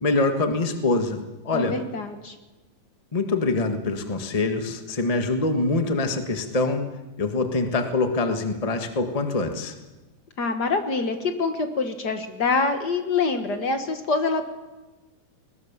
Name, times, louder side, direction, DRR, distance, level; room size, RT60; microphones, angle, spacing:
voice 1, 0.0-1.8 3.1-6.8 7.2-9.7, left 3 dB, 70° left, 6 dB, 0.3 m, -24 dB
voice 2, 1.5-2.3 10.4-14.5, left 4 dB, 45° left, 7 dB, 1.5 m, -25 dB
20.5 x 19.5 x 7.4 m, 1.1 s
omnidirectional pair, 3.6 m